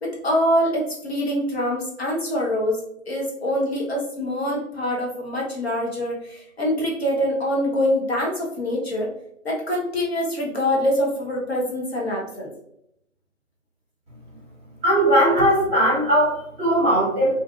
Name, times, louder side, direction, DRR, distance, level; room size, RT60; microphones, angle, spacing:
voice 1, 0.0-2.8 3.1-9.1 9.4-12.5, equal, 50° left, -3 dB, 0.7 m, -24 dB
voice 2, 14.8-17.3, right 1 dB, 10° right, -10 dB, 1.0 m, -19 dB
2.5 x 2.4 x 2.2 m, 0.79 s
figure-of-eight pair, 150°, 41 cm